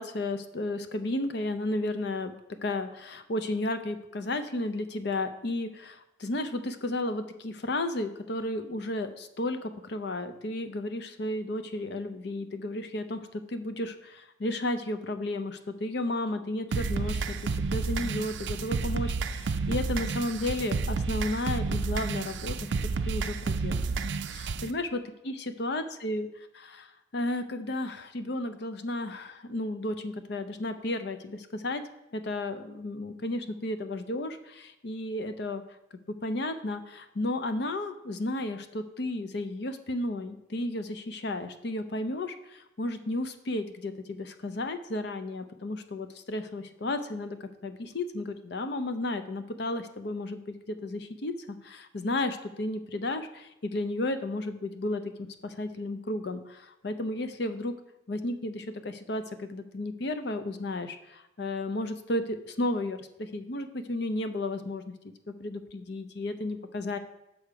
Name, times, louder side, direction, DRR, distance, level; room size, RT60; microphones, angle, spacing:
voice 1, 0.0-24.0 24.3-26.3 26.5-31.8 32.1-35.6 36.1-57.7 58.1-64.9 65.3-67.0, left 2 dB, 55° left, 10 dB, 0.6 m, -33 dB
sound 1, 16.7-24.7, right 4 dB, 65° right, 0.4 m, -30 dB
6.6 x 6.3 x 4.7 m, 0.90 s
head